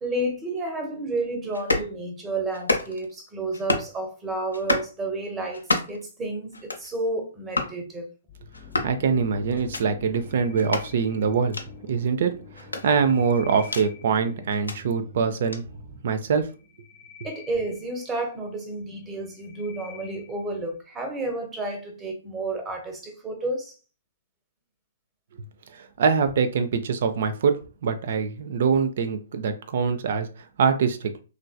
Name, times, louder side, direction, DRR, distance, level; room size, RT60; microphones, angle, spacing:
voice 1, 0.0-8.1 17.2-23.7, right 2 dB, 15° right, 0.8 m, -31 dB
sound 1, 1.5-1.9 2.5-3.1 3.5-3.9 4.5-4.9 5.5-6.1 6.5-6.9 7.5-7.8 8.5-9.0 9.5-9.8 10.6-10.9 11.5-11.7 12.6-13.9 14.5-14.8 15.5-15.6, left 2 dB, 80° left, 0.6 m, -28 dB
sound 2, 8.3-16.1, left 4 dB, 25° left, 0.4 m, -45 dB
voice 2, 8.8-11.6 11.9-15.6 16.0-16.5 25.8-27.6 27.8-31.1, right 6 dB, 55° right, 0.4 m, -24 dB
sound 3, 10.2-11.7 12.6-14.5 16.4-18.5 19.0-20.6, left 7 dB, 85° right, 1.1 m, -49 dB
3.1 x 2.6 x 2.2 m
figure-of-eight pair, 120°, 0 cm